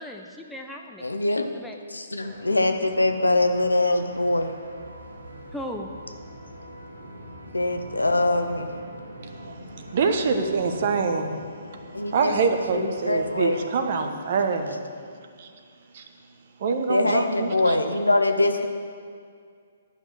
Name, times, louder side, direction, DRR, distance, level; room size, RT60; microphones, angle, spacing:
voice 1, 0.0-1.1 1.5-1.8 2.2-2.4 3.9-4.0 5.5-5.9, left 1 dB, 5° left, 1 dB, 0.6 m, -37 dB
voice 2, 1.0-1.5 1.9-4.5 7.5-8.7 11.9-12.3 12.7-13.6 16.9-18.7, left 2 dB, 85° left, 6 dB, 0.7 m, -23 dB
sound 1, 2.2-14.1, equal, 85° right, 2.1 m, -43 dB
voice 3, 9.9-11.4 12.1-14.9 15.4-15.5 15.9-16.0 16.6-17.8, right 5 dB, 50° right, 6 dB, 1.1 m, -25 dB
11.0 x 5.8 x 7.5 m, 2.2 s
figure-of-eight pair, 130°, 0 cm